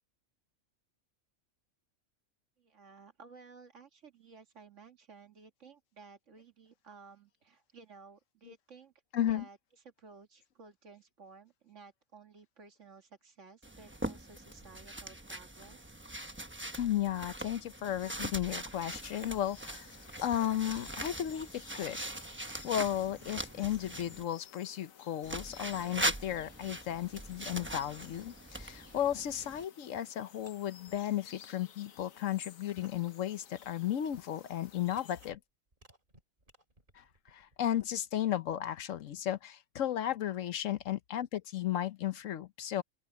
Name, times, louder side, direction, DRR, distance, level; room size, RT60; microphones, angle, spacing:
voice 1, 2.6-8.9 9.3-9.6 9.8-16.0, right 4 dB, 65° right, 2.1 m, -55 dB
voice 2, 9.1-9.4 16.8-19.9 20.2-22.0 22.6-35.4 37.0-42.8, left 11 dB, 75° left, 1.1 m, -34 dB
sound 1, 13.6-24.2 25.2-29.7, right 1 dB, 10° right, 0.9 m, -41 dB
sound 2, 18.7-35.3, left 8 dB, 90° left, 1.5 m, -56 dB
sound 3, 29.8-30.0 30.3-30.9 31.4-31.5 32.2-32.3 32.7-33.2 33.4-33.5 34.0-34.3 34.8-35.4 35.7-37.9, right 1 dB, 40° right, 3.8 m, -61 dB
open air
omnidirectional pair, 1.4 m